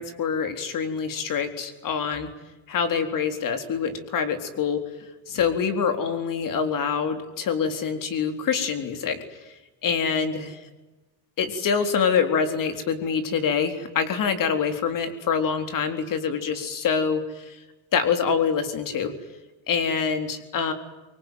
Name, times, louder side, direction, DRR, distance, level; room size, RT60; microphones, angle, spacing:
voice 1, 0.0-2.3 2.7-9.2 9.8-10.6 11.4-17.6 17.9-19.1 19.7-20.7, left 6 dB, 45° left, 7 dB, 4.0 m, -25 dB
25.5 x 23.5 x 9.4 m, 1.1 s
cardioid pair, 150°, 46 cm